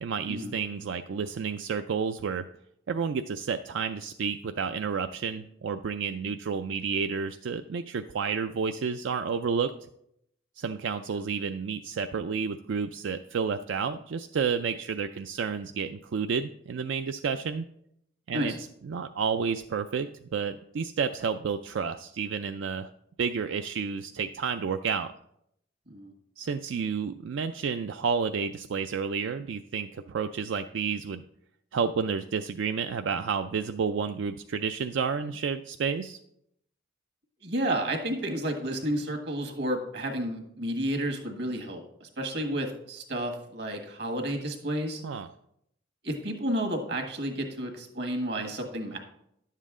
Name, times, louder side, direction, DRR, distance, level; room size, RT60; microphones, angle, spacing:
voice 1, 0.0-2.5 2.9-9.7 10.6-17.7 18.3-18.5 18.8-22.9 23.2-25.1 26.4-31.2 31.7-36.2 45.0-45.3, right 6 dB, 75° right, 8 dB, 0.4 m, -30 dB
voice 2, 37.4-45.0 46.0-49.0, right 1 dB, 60° right, 5 dB, 1.5 m, -31 dB
10.5 x 7.4 x 3.7 m, 0.75 s
head